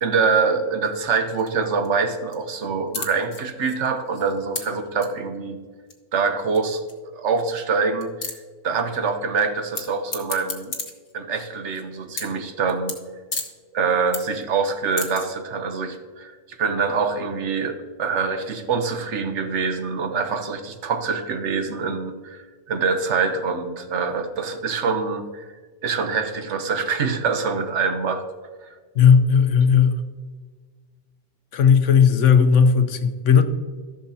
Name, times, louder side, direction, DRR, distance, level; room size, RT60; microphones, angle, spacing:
voice 1, 0.0-5.6 6.1-8.1 8.6-10.7 11.1-13.0 13.7-25.5 25.8-28.2, right 5 dB, 70° right, 7 dB, 1.1 m, -25 dB
sound 1, 1.4-2.4 2.6-2.7 2.9-4.6 5.0-5.1 5.9-6.0 6.5-6.6 6.9-7.0 7.2-7.3 7.7-7.8 8.0-8.3 9.8-9.9 10.1-11.8 12.1-12.4 12.7-13.0 13.3-13.5 13.9-14.4 14.7-15.3, left 4 dB, 50° left, 1.3 m, -31 dB
voice 2, 28.9-30.0 31.5-33.4, left 6 dB, 80° left, 9 dB, 1.1 m, -15 dB
14.5 x 6.4 x 2.8 m, 1.5 s
omnidirectional pair, 1.3 m